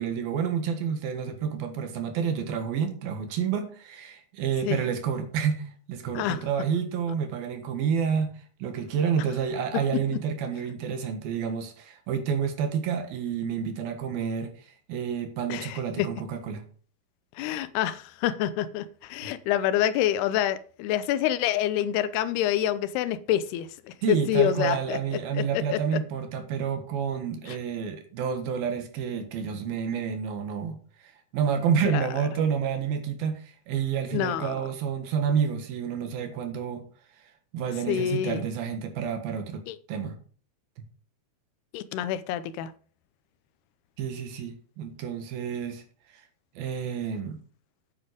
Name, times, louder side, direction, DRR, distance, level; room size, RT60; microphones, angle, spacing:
voice 1, 0.0-8.3 8.6-16.6 24.0-30.8 31.0-36.9 37.5-39.6 39.9-40.2 44.0-45.8 46.6-47.4, right 7 dB, 70° right, 3.4 m, -29 dB
voice 2, 15.5-16.1 17.4-26.0 27.5-27.6 31.9-32.1 34.1-34.6 37.9-38.4 39.7-39.8 41.7-42.7, left 11 dB, 85° left, 2.7 m, -27 dB
9.5 x 8.8 x 5.0 m
omnidirectional pair, 4.6 m